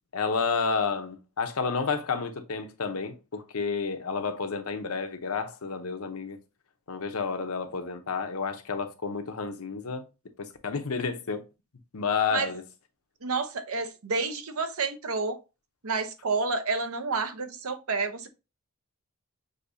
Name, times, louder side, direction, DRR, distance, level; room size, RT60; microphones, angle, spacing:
voice 1, 0.1-6.4 6.9-10.1 10.4-11.4 11.9-12.6, left 5 dB, 90° left, 0.8 m, -30 dB
voice 2, 13.2-15.4 15.8-18.3, right 4 dB, 80° right, 0.8 m, -29 dB
6.5 x 2.7 x 2.6 m
head